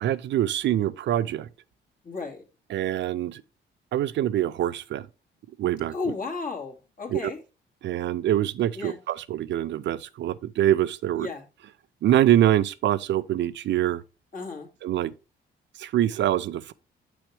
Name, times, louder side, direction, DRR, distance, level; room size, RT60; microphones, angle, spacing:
voice 1, 0.0-1.5 2.7-3.4 3.9-5.1 5.6-5.9 7.1-7.3 7.8-11.3 12.0-14.0 14.8-15.1 15.8-16.7, right 12 dB, 65° right, 0.5 m, -24 dB
voice 2, 2.0-2.4 5.9-7.4 8.8-9.0 11.2-11.4 14.3-14.7, left 4 dB, 45° left, 2.1 m, -33 dB
7.1 x 6.1 x 3.2 m
cardioid pair, 90°, 20 cm